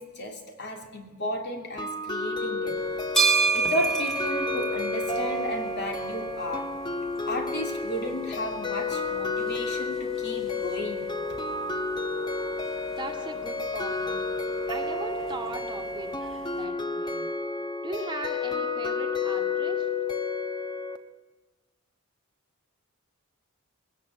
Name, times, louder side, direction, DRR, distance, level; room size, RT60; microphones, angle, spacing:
voice 1, 0.0-2.8 3.5-6.7 7.3-11.1, left 1 dB, 50° left, 3 dB, 3.0 m, -34 dB
sound 1, 1.8-21.0, left 3 dB, 20° left, 1.1 m, -31 dB
sound 2, 2.8-16.6, right 4 dB, 5° left, 3.0 m, -33 dB
voice 2, 12.9-14.2 14.7-16.1 16.6-17.2 17.8-19.9, right 2 dB, 20° right, 2 dB, 2.2 m, -38 dB
20.5 x 17.5 x 8.4 m, 1.3 s
head